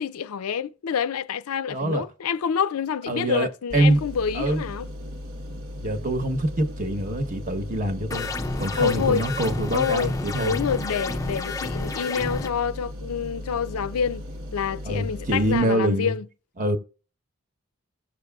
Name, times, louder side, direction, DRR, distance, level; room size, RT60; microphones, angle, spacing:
voice 1, 0.0-4.9 8.8-9.2 9.7-14.3 14.5-16.3, left 7 dB, 80° left, 0.4 m, -27 dB
voice 2, 1.7-2.0 3.1-4.0 4.3-4.6 5.8-8.3 8.6-10.6 14.8-16.2 16.6-16.8, right 1 dB, 35° right, 1.0 m, -25 dB
sound 1, 3.7-15.6, left 1 dB, 65° right, 1.0 m, -37 dB
sound 2, 8.1-12.5, left 3 dB, 15° left, 0.4 m, -30 dB
16.5 x 6.6 x 2.3 m
head